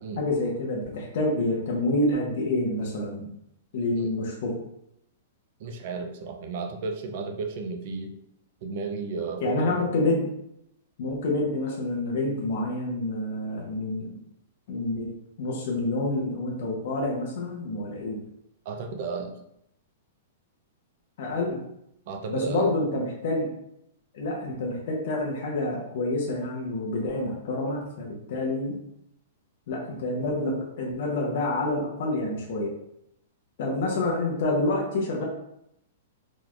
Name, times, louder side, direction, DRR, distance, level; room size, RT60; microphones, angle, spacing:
voice 1, 0.2-3.3 3.7-4.6 9.4-10.2 11.0-14.2 14.7-15.1 15.4-18.2 21.2-21.6 22.3-23.5 24.1-28.7 29.7-32.7 33.6-35.2, left 2 dB, 45° left, -2 dB, 0.7 m, -28 dB
voice 2, 5.6-8.1 8.6-9.8 18.7-19.4 22.1-22.7, right 4 dB, 40° right, 5 dB, 0.4 m, -33 dB
3.8 x 3.0 x 2.4 m, 0.78 s
hypercardioid pair, 175°, 0 cm